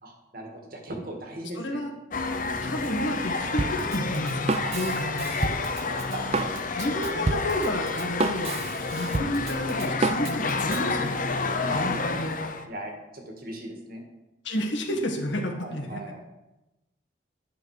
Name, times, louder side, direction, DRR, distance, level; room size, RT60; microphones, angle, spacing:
voice 1, 0.0-1.8 2.4-2.9 4.6-4.8 5.6-6.5 7.1-7.2 11.6-12.0 12.7-14.0 15.6-16.2, right 1 dB, 50° right, 2 dB, 1.8 m, -39 dB
voice 2, 1.6-1.9 2.6-5.5 6.8-8.6 8.9-11.1 11.7-12.4 14.4-16.0, left 1 dB, 70° left, 1 dB, 1.7 m, -31 dB
sound 1, 2.1-12.6, left 4 dB, 45° left, 0.7 m, -30 dB
Drum kit, 3.6-10.9, right 3 dB, 30° right, 0.4 m, -30 dB
10.5 x 6.8 x 4.9 m, 0.99 s
head